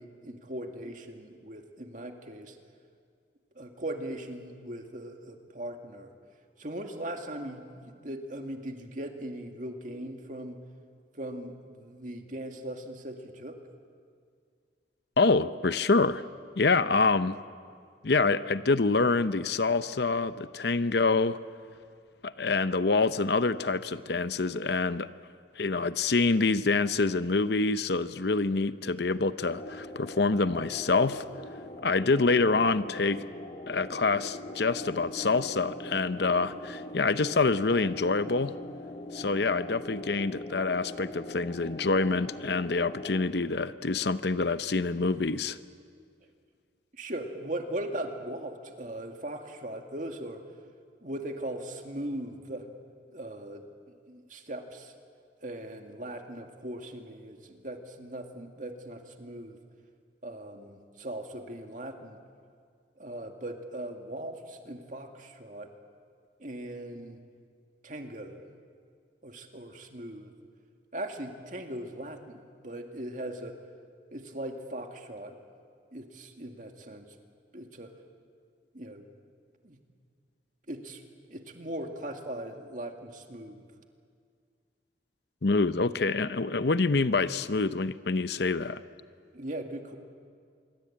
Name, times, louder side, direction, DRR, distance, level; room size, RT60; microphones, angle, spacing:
voice 1, 0.0-2.6 3.6-6.1 6.6-10.6 11.1-13.6 46.9-50.4 51.0-52.7 53.1-53.6 54.1-54.9 55.4-59.6 60.2-62.2 63.0-65.7 66.4-67.2 67.8-68.4 69.2-70.3 70.9-73.6 74.1-75.4 75.9-77.1 77.5-77.9 78.7-79.1 79.6-79.8 80.7-81.0 81.3-83.6 89.3-90.0, right 1 dB, 40° right, 4 dB, 2.2 m, -39 dB
voice 2, 15.2-16.2 16.6-17.4 18.0-21.4 22.2-25.1 25.6-31.2 31.8-33.3 33.7-38.6 39.1-45.6 85.4-88.8, left 3 dB, 60° left, 13 dB, 0.7 m, -26 dB
sound 1, 29.4-43.3, left 1 dB, 35° left, 1.9 m, -42 dB
26.0 x 23.5 x 8.7 m, 2.2 s
head